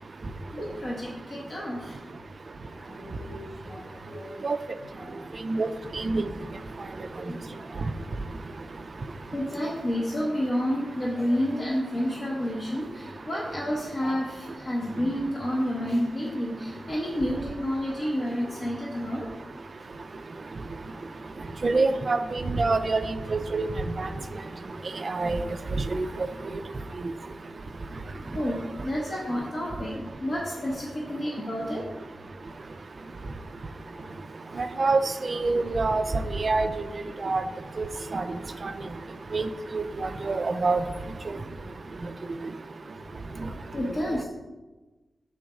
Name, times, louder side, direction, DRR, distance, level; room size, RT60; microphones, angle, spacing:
voice 1, 0.5-2.0 2.7-4.5 5.0-5.5 5.9-6.1 6.9-7.9 9.3-19.3 24.1-24.4 28.2-32.6 33.9-34.1 34.5-34.6 41.3-41.5 43.3-44.2, equal, 35° left, -4 dB, 0.8 m, -31 dB
voice 2, 21.6-23.0 23.3-23.7 24.0-24.1 25.0-25.4 25.9-26.3 34.6-36.0 36.4-36.7 37.2-37.4 37.8-37.9 38.1-38.2 39.3-39.4 39.7-40.8, right 3 dB, 35° right, 9 dB, 0.3 m, -25 dB
6.3 x 3.9 x 4.7 m, 1.2 s
wide cardioid pair, 175°, 0 cm